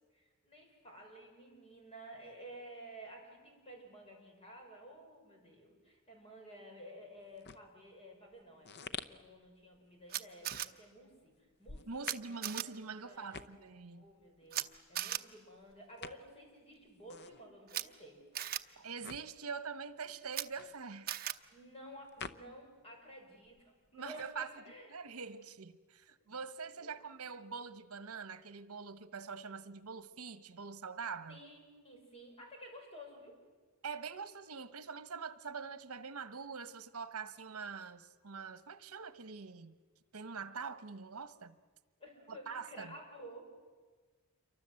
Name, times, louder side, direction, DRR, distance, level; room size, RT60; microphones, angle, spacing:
voice 1, 0.1-8.7 9.1-11.3 11.6-13.5 13.9-18.2 21.5-24.9 26.2-26.3 26.8-26.9 31.3-33.4 42.0-43.5, right 1 dB, 30° left, 6.2 m, -53 dB
sound 1, 7.2-23.0 23.2-24.8, left 5 dB, 50° left, 0.8 m, -51 dB
Camera, 10.1-10.7 12.0-12.1 12.4-12.6 14.5-14.6 14.9-15.2 17.7-17.8 18.3-18.6 20.3-20.4 21.1-21.3, right 12 dB, 45° right, 0.8 m, -37 dB
voice 2, 11.9-14.1 18.8-21.4 23.9-24.5 24.9-31.4 33.8-39.7 40.1-41.6 42.3-42.9, right 5 dB, 75° right, 1.1 m, -44 dB
28.0 x 24.0 x 7.7 m
head